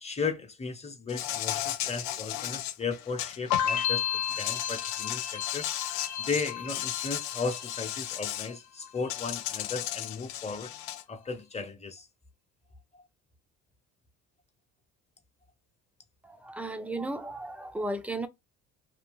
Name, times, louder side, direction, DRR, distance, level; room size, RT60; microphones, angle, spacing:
voice 1, 0.0-4.0 4.3-10.7 11.1-12.1 12.9-13.0, left 4 dB, 20° left, 1.1 m, -36 dB
Insect, 1.1-3.9 4.2-8.5 9.1-11.0, left 13 dB, 85° left, 0.5 m, -35 dB
sound 1, 3.5-8.5 8.8-9.5, left 9 dB, 65° left, 1.0 m, -33 dB
voice 2, 16.2-18.3, right 2 dB, 5° right, 0.6 m, -35 dB
2.7 x 2.4 x 3.5 m
supercardioid pair, 80°, 32 cm